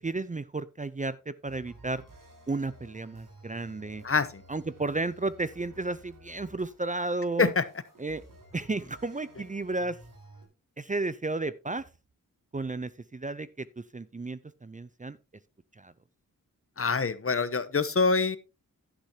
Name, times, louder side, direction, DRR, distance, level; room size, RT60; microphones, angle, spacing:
voice 1, 0.0-2.0 2.5-4.0 4.5-7.5 8.0-8.2 8.5-10.0 10.8-11.8 12.5-15.2 15.8-15.9, right 3 dB, 25° right, 0.6 m, -33 dB
sound 1, 1.5-10.5, right 1 dB, 70° right, 4.6 m, -53 dB
voice 2, 4.0-4.4 7.4-7.6 16.8-18.4, left 4 dB, 40° left, 1.0 m, -25 dB
11.5 x 10.0 x 2.9 m
cardioid pair, 55°, 33 cm